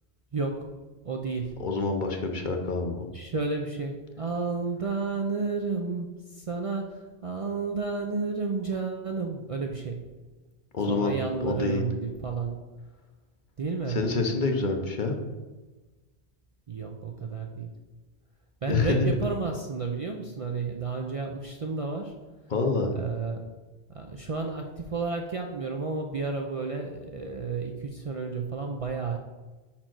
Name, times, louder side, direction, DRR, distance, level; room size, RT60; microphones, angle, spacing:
voice 1, 0.3-0.7 1.0-1.6 3.1-10.0 10.9-12.6 13.6-14.0 16.7-17.7 18.6-22.1 22.9-23.5 23.9-29.2, right 4 dB, 45° right, 2 dB, 0.5 m, -31 dB
voice 2, 1.6-3.0 10.7-11.8 13.9-15.2 18.7-19.1 22.5-22.9, left 3 dB, 50° left, 4 dB, 0.8 m, -27 dB
5.1 x 4.4 x 5.9 m, 1.2 s
omnidirectional pair, 1.1 m